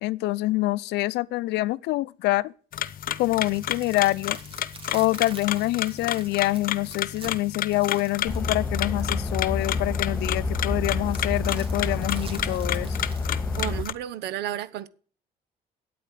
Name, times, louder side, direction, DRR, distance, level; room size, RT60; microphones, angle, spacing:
voice 1, 0.0-2.5 3.2-4.4 4.9-13.0, left 18 dB, 85° left, 0.6 m, -26 dB
sound 1, 2.7-13.9, left 11 dB, 60° left, 0.9 m, -32 dB
sound 2, 3.0-9.3 11.1-13.3, right 4 dB, 35° right, 2.8 m, -46 dB
sound 3, 8.2-13.8, left 3 dB, 10° left, 1.9 m, -28 dB
voice 2, 13.6-14.9, right 11 dB, 80° right, 1.2 m, -32 dB
9.2 x 8.7 x 9.2 m
cardioid pair, 110°, 17 cm